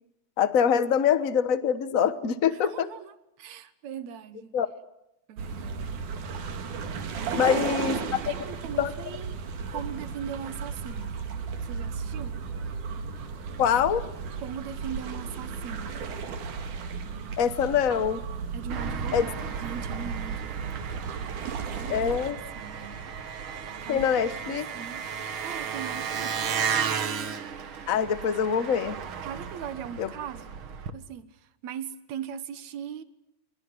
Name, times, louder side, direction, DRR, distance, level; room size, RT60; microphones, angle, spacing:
voice 1, 0.4-2.9 4.5-4.7 7.4-8.0 8.3-8.4 8.8-8.9 13.6-14.1 17.4-18.2 19.1-19.3 21.9-22.4 23.9-24.6 27.9-29.0 30.0-30.1, left 8 dB, 85° left, 0.7 m, -24 dB
voice 2, 2.6-4.5 5.3-6.1 7.3-7.4 7.7-7.8 8.3-9.4 9.7-11.2 11.6-12.4 14.4-16.0 18.5-20.9 21.7-23.0 23.8-24.1 24.4-25.1 25.4-26.4 29.2-30.6 30.9-33.0, right 8 dB, 70° right, 2.5 m, -40 dB
sound 1, 5.4-22.3, right 5 dB, 85° right, 3.6 m, -35 dB
Engine, 18.7-30.9, right 7 dB, 50° right, 2.0 m, -34 dB
25.0 x 23.0 x 9.6 m
omnidirectional pair, 3.4 m